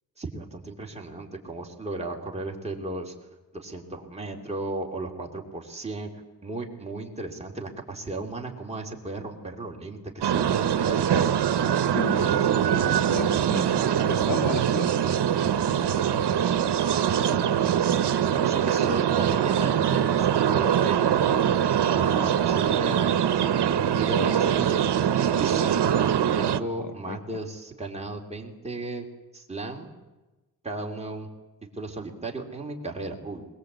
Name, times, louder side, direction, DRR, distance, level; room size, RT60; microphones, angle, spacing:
voice 1, 0.2-3.1 3.5-6.1 6.4-11.2 17.0-17.1 18.4-21.0 21.8-23.1 23.9-24.9 25.4-25.7 26.3-29.1 29.3-29.9 30.6-31.3 31.7-33.4, right 2 dB, 15° right, 0 dB, 2.9 m, -35 dB
sound 1, 10.2-26.6, right 9 dB, 85° right, 1.0 m, -23 dB
voice 2, 11.8-12.8 13.1-13.7 14.1-14.9 23.4-23.5 24.2-24.3 24.5-24.7 26.8-27.2, left 6 dB, 50° left, 10 dB, 0.9 m, -34 dB
21.5 x 21.5 x 8.1 m, 1.1 s
wide cardioid pair, 150°, 40 cm